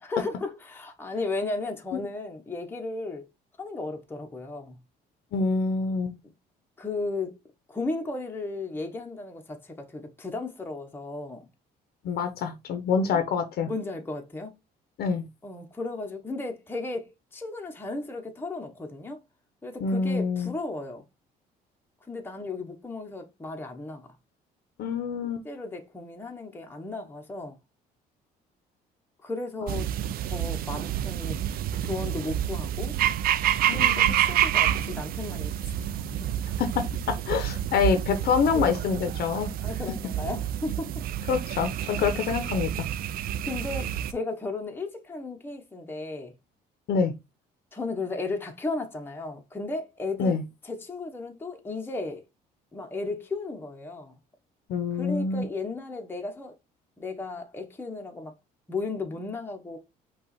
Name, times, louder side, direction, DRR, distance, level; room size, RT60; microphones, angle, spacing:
voice 1, 0.0-3.3 3.6-4.8 6.2-6.3 6.8-7.4 7.7-11.5 13.1-13.2 13.6-14.6 15.4-19.2 19.6-21.0 22.1-24.1 25.4-27.5 29.2-29.9 30.3-31.4 31.8-33.0 33.7-35.7 36.1-36.4 38.5-38.7 39.6-41.1 43.4-46.3 47.7-50.4 50.6-52.3 52.7-54.1 54.9-56.5 57.0-58.3 58.7-59.8, left 3 dB, 10° left, 0.9 m, -35 dB
voice 2, 5.3-6.1 12.0-13.7 15.0-15.2 19.8-20.5 24.8-25.4 29.6-29.8 33.7-34.2 36.6-39.5 41.3-42.9 46.9-47.1 50.2-50.4 54.7-55.5, left 5 dB, 65° left, 0.8 m, -26 dB
sound 1, 29.7-44.1, right 11 dB, 60° right, 0.4 m, -28 dB
5.4 x 2.4 x 4.0 m
cardioid pair, 110°, 17 cm